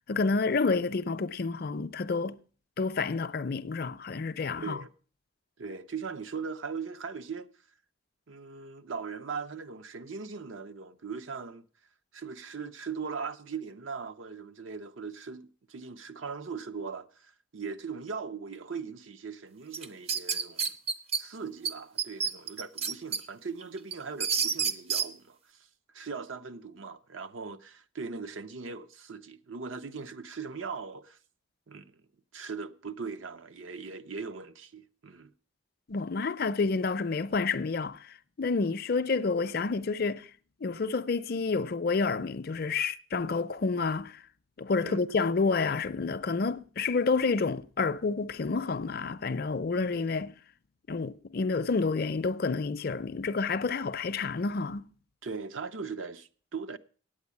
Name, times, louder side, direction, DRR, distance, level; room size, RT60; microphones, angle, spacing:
voice 1, 0.1-2.4 2.8-4.8 35.9-40.3 40.6-44.2 44.6-50.3 50.9-54.9, left 4 dB, 50° left, 0.5 m, -29 dB
voice 2, 4.6-4.9 5.6-7.5 8.3-11.6 12.1-20.7 21.2-25.7 25.9-31.2 31.7-31.9 32.3-35.3 44.8-45.1 55.2-56.8, right 5 dB, 75° right, 0.7 m, -39 dB
sound 1, 19.7-21.2 21.7-21.8 22.0-23.2 23.6-25.1, right 6 dB, 30° right, 0.5 m, -29 dB
9.0 x 8.8 x 8.3 m
head